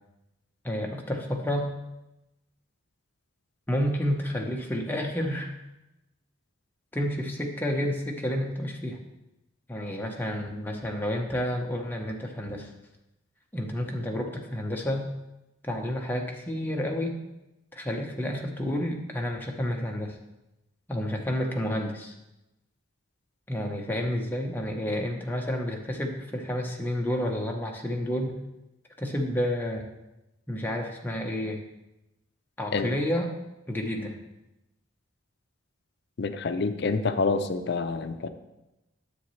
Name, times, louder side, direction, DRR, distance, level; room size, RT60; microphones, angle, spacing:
voice 1, 0.6-1.7 3.7-5.5 6.9-9.0 9.7-12.7 13.5-15.1 15.6-17.2 17.7-20.2 20.9-22.1 23.5-28.4 29.0-29.8 30.5-31.6 32.6-33.3 33.7-34.2, equal, 10° left, 0 dB, 0.8 m, -30 dB
voice 2, 36.2-38.3, left 4 dB, 55° left, 9 dB, 0.5 m, -27 dB
10.0 x 7.2 x 3.1 m, 0.95 s
head